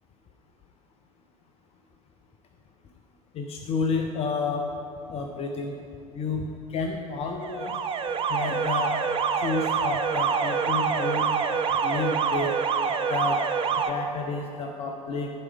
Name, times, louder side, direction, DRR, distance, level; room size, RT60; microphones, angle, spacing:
voice 1, 3.3-4.6 5.1-5.7 6.1-6.4 6.7-7.8 8.3-8.9 9.4-11.3 11.8-12.6 13.1-13.4 13.9-15.3, left 4 dB, 35° left, 3 dB, 0.6 m, -30 dB
Alarm, 7.4-13.9, right 6 dB, 30° right, 0.5 m, -26 dB
10.5 x 4.9 x 6.0 m, 2.8 s
figure-of-eight pair, 75°, 19 cm